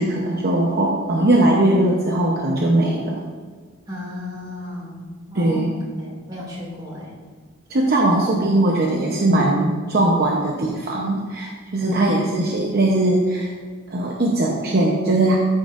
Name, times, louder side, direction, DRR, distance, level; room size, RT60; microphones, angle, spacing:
voice 1, 0.0-3.2 5.3-5.7 7.7-13.5 13.9-15.4, right 1 dB, 50° right, -2 dB, 0.8 m, -20 dB
voice 2, 3.9-7.1 8.2-8.3 11.8-12.4, left 1 dB, 20° right, -5 dB, 2.2 m, -32 dB
13.0 x 5.3 x 2.5 m, 1.5 s
head